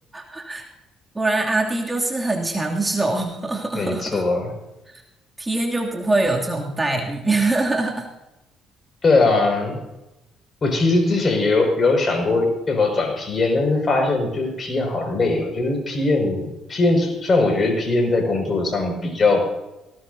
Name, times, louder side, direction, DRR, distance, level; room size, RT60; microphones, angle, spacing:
voice 1, 0.1-0.7 1.1-4.2 4.9-5.0 5.4-8.1, right 2 dB, 20° right, 0 dB, 2.7 m, -23 dB
voice 2, 3.7-4.5 9.0-9.8 10.6-19.4, left 3 dB, 40° left, 3 dB, 5.8 m, -20 dB
19.0 x 18.0 x 2.8 m, 0.96 s
hypercardioid pair, 60°, 0 cm